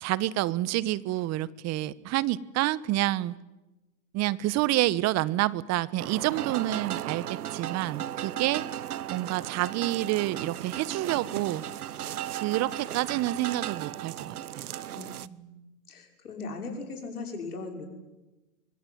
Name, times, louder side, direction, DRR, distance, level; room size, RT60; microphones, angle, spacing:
voice 1, 0.0-3.3 4.1-7.2 7.5-8.6 9.1-11.6 12.4-14.7, right 16 dB, 35° right, 20 dB, 1.1 m, -28 dB
sound 1, 6.0-15.3, right 11 dB, 85° right, 1.0 m, -36 dB
voice 2, 14.9-17.9, left 3 dB, 85° left, 4 dB, 6.0 m, -39 dB
23.5 x 23.0 x 9.4 m, 1.1 s
hypercardioid pair, 105°, 43 cm